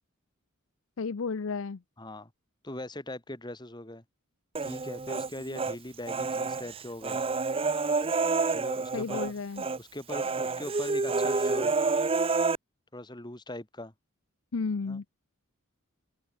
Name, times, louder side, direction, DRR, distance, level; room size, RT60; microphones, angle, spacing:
voice 1, 1.0-1.8 8.9-9.6 14.5-15.1, left 4 dB, 65° left, 0.6 m, -32 dB
voice 2, 2.0-2.3 2.6-4.0 4.6-7.2 8.5-9.3 9.8-11.7 12.9-13.9 14.9-15.0, left 1 dB, 20° left, 2.6 m, -41 dB
Human voice, 4.6-5.8 6.1-9.3 9.6-9.8 10.1-12.6, right 4 dB, 25° right, 0.6 m, -28 dB
open air
head